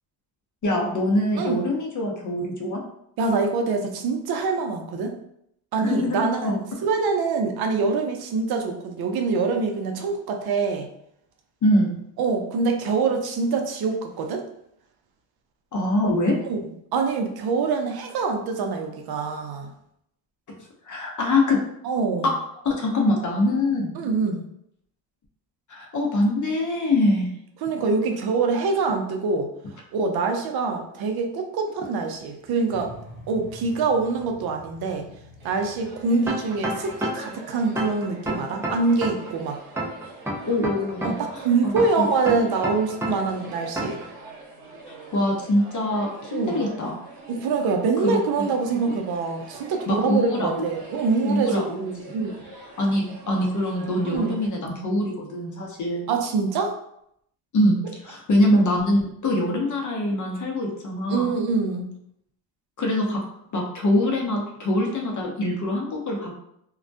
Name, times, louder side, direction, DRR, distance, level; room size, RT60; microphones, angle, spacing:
voice 1, 0.6-2.8 5.8-6.6 11.6-12.0 15.7-16.3 20.5-20.6 20.8-21.6 22.6-23.9 25.7-27.3 40.5-41.7 42.0-42.1 44.9-47.0 48.0-48.5 49.9-50.6 51.2-52.2 52.8-56.1 57.5-61.4 62.8-63.2 63.5-66.4, left 1 dB, 40° left, 0 dB, 0.7 m, -24 dB
voice 2, 3.2-5.1 5.7-10.9 12.2-14.4 16.5-16.6 16.9-19.7 21.8-22.3 24.0-24.5 27.6-29.5 29.9-32.9 33.3-35.1 35.4-39.6 41.0-44.0 46.3-46.6 47.3-52.4 54.0-54.3 56.1-56.8 61.1-61.9, right 4 dB, 50° right, 4 dB, 0.6 m, -25 dB
sound 1, 31.8-37.0, equal, 80° left, 1.0 m, -47 dB
sound 2, 35.4-54.5, right 3 dB, 85° right, 0.9 m, -44 dB
sound 3, 36.3-37.3 37.8-39.3 39.8-41.3 41.8-43.3 43.8-44.1, right 1 dB, 5° right, 0.4 m, -29 dB
2.3 x 2.1 x 2.6 m, 0.75 s
supercardioid pair, 75°, 48 cm